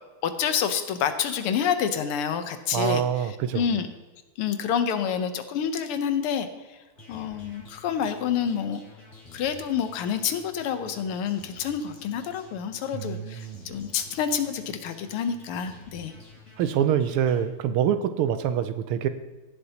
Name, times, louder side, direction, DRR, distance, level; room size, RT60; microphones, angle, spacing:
voice 1, 0.2-3.0 3.5-3.9 4.4-6.5 7.1-8.8 9.3-16.1, left 8 dB, 90° left, 9 dB, 1.8 m, -28 dB
voice 2, 2.7-3.7 12.9-13.7 16.6-19.1, right 9 dB, 85° right, 11 dB, 1.6 m, -25 dB
sound 1, 6.9-17.4, left 3 dB, 30° left, 3.0 m, -50 dB
17.0 x 7.9 x 2.9 m, 1.2 s
omnidirectional pair, 2.4 m